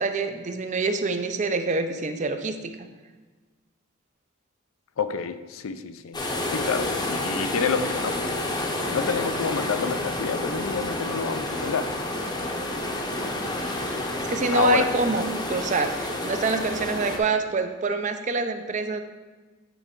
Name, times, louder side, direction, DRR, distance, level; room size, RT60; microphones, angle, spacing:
voice 1, 0.0-2.9 14.2-19.0, right 3 dB, 35° right, 8 dB, 0.4 m, -26 dB
voice 2, 5.0-6.2 6.4-8.4 8.9-11.9 14.5-14.9, left 5 dB, 85° left, 11 dB, 0.4 m, -28 dB
sound 1, 6.1-17.2, left 1 dB, 20° left, 0.7 m, -29 dB
8.8 x 4.8 x 3.6 m, 1.3 s
head